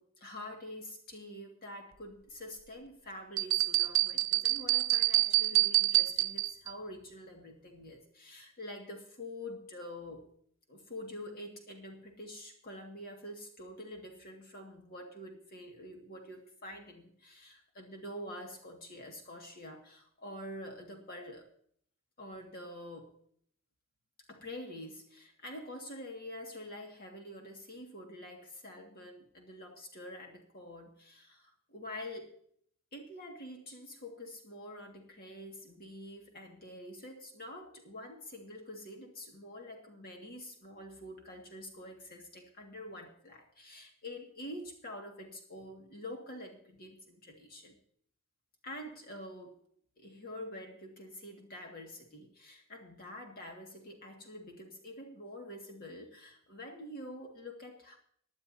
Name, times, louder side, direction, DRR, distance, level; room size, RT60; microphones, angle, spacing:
voice 1, 0.0-10.3 10.7-21.4 22.2-23.1 24.3-32.4 32.9-47.8 48.6-49.6 50.0-58.0, left 1 dB, 45° left, 2 dB, 2.0 m, -46 dB
sound 1, 3.4-6.7, right 18 dB, 80° right, 0.7 m, -27 dB
19.5 x 11.5 x 2.7 m, 0.63 s
head